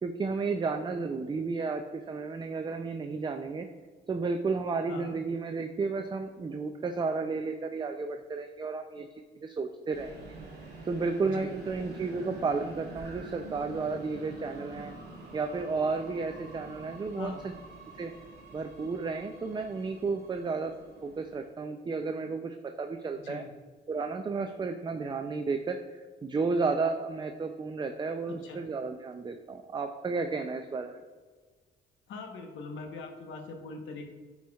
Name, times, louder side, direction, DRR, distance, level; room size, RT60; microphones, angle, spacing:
voice 1, 0.0-3.7 4.1-10.1 10.9-14.9 15.3-17.5 18.0-18.1 18.5-20.7 21.0-23.4 23.9-31.0, right 4 dB, 25° right, 6 dB, 0.4 m, -32 dB
sound 1, 9.9-21.5, right 2 dB, 55° right, 1.6 m, -47 dB
voice 2, 23.1-23.5 28.3-28.6 32.1-34.0, left 4 dB, 80° left, 4 dB, 1.0 m, -41 dB
9.2 x 4.5 x 2.3 m, 1.4 s
cardioid pair, 90°, 20 cm